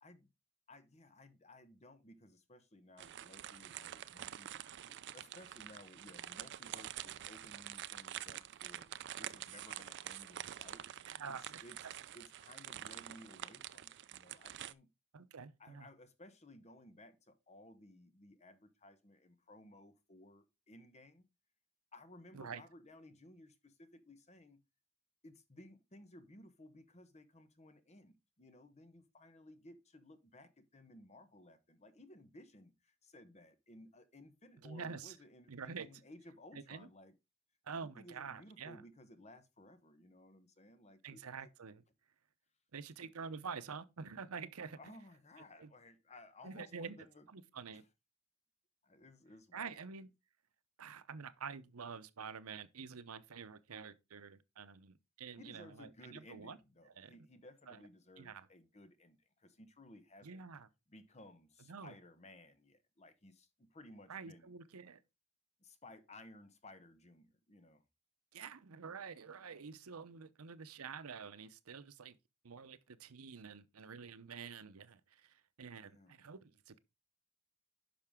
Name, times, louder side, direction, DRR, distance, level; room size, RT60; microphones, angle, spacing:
voice 1, 0.7-8.9 9.1-10.8 11.3-11.8 12.1-14.9 15.6-21.3 21.9-24.6 25.2-37.1 37.9-41.5 44.8-47.3 47.7-47.8 48.8-49.8 55.4-60.4 60.9-64.5 65.6-67.8 75.8-76.1, left 1 dB, 30° left, 1.1 m, -58 dB
sound 1, 3.0-14.7, right 11 dB, 55° right, 0.4 m, -47 dB
voice 2, 11.1-11.6 15.1-15.9 22.3-22.6 34.6-35.2 35.5-35.9 36.5-36.9 37.6-38.8 41.0-41.8 42.7-44.8 45.6-45.7 46.4-47.0 47.3-47.9 49.5-50.1 50.8-56.6 57.0-57.1 57.7-57.8 58.2-58.5 60.2-60.7 61.7-61.9 64.1-65.0 68.3-72.2 72.4-76.8, right 5 dB, 85° right, 0.7 m, -48 dB
10.5 x 5.9 x 3.6 m
head